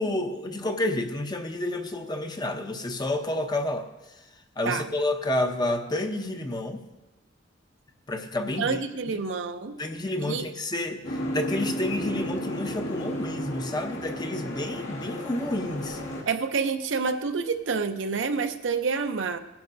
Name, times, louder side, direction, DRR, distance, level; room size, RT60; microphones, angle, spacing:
voice 1, 0.0-3.9 4.6-6.8 8.1-8.8 9.8-16.0, left 1 dB, 20° left, 5 dB, 0.7 m, -29 dB
voice 2, 8.6-9.8 10.2-10.4 16.3-19.4, right 5 dB, 80° right, 7 dB, 0.7 m, -28 dB
Boat Water vehicle, 11.0-16.2, equal, 70° left, 2.1 m, -33 dB
17.0 x 11.5 x 2.7 m, 1.1 s
head